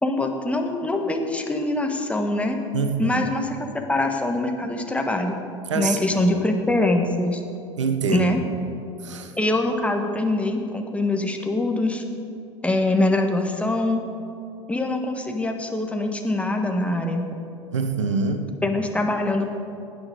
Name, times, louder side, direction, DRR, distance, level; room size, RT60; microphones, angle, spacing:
voice 1, 0.0-2.6 3.0-3.5 3.7-5.4 5.7-7.4 8.1-8.4 9.4-12.0 12.6-14.0 14.7-17.3 18.6-19.5, left 2 dB, 10° left, 4 dB, 1.5 m, -23 dB
voice 2, 2.7-3.2 5.7-6.3 7.8-8.3 9.0-9.3 17.7-18.5, right 5 dB, 75° right, 8 dB, 1.0 m, -25 dB
17.0 x 9.5 x 5.2 m, 2.6 s
figure-of-eight pair, 75°, 16 cm